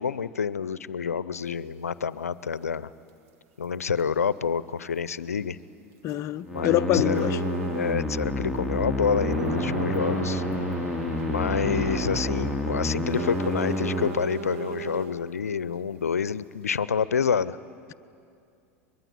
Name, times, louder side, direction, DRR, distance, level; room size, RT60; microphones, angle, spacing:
voice 1, 0.0-2.9 3.6-5.6 6.5-7.4 7.8-10.4 11.3-17.6, left 6 dB, 90° left, 0.6 m, -28 dB
sound 1, 1.4-1.5 3.1-3.3 3.6-3.7 4.0-4.1 6.0-6.3 6.6-6.7 7.1-8.3 9.3-9.5 9.9-10.0 10.5-10.7 11.2-11.3 13.1-15.2, right 8 dB, 65° right, 2.2 m, -37 dB
voice 2, 6.0-7.4, left 13 dB, 40° left, 0.6 m, -25 dB
sound 2, 6.4-14.1, left 1 dB, 5° right, 2.2 m, -29 dB
Splash splatter, 8.9-12.9, right 1 dB, 85° right, 5.9 m, -35 dB
24.0 x 21.5 x 9.7 m
hypercardioid pair, 85°, 8 cm